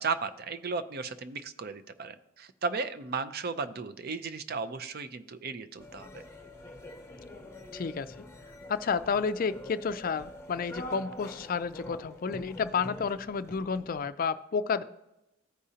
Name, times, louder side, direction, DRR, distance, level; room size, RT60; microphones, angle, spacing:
voice 1, 0.0-6.2, right 4 dB, 45° right, 12 dB, 0.5 m, -35 dB
sound 1, 5.8-14.1, left 1 dB, 15° left, 1.0 m, -46 dB
voice 2, 7.7-8.1 8.7-14.8, left 5 dB, 40° left, 13 dB, 0.4 m, -31 dB
14.5 x 5.0 x 2.8 m, 0.90 s
head